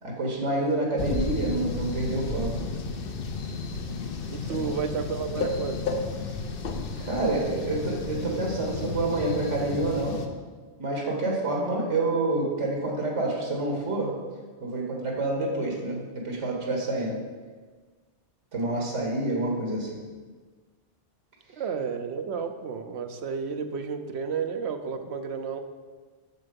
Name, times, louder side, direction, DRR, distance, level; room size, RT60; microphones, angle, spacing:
voice 1, 0.0-2.5 4.5-4.7 7.0-10.2 10.8-14.1 14.6-17.2 18.5-20.0, right 2 dB, 85° right, -1 dB, 1.9 m, -28 dB
sound 1, 1.0-10.3, left 4 dB, 55° left, 0.9 m, -32 dB
voice 2, 4.3-5.9 21.5-25.6, right 6 dB, 65° right, 7 dB, 0.9 m, -32 dB
7.9 x 6.6 x 5.2 m, 1.5 s
omnidirectional pair, 1.2 m